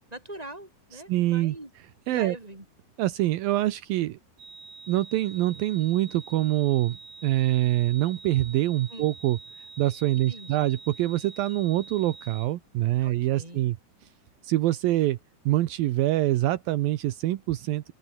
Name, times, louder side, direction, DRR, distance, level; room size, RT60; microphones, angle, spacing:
voice 1, 0.1-1.7 2.1-2.7 8.9-9.1 10.1-10.7 13.0-13.7, right 1 dB, 10° right, 7.4 m, -42 dB
voice 2, 1.1-1.6 2.1-2.4 3.0-4.2 4.9-9.4 9.8-13.8 14.4-15.2 15.5-17.9, right 15 dB, 80° right, 2.7 m, -25 dB
sound 1, 4.4-12.5, right 3 dB, 60° right, 9.9 m, -46 dB
open air
omnidirectional pair, 4.3 m